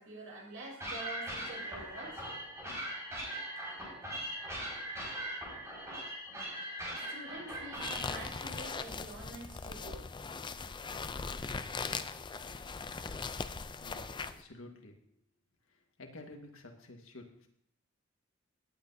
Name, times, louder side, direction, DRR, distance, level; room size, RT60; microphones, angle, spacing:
voice 1, 0.0-2.4 6.9-10.1, right 2 dB, 85° right, -3 dB, 5.3 m, -47 dB
sound 1, 0.8-8.2, right 1 dB, 15° right, 5.0 m, -40 dB
sound 2, 7.7-14.4, left 4 dB, 25° left, 0.4 m, -40 dB
voice 2, 13.8-15.0 15.7-17.5, left 2 dB, 80° left, 3 dB, 1.6 m, -51 dB
18.0 x 8.9 x 2.7 m, 0.69 s
head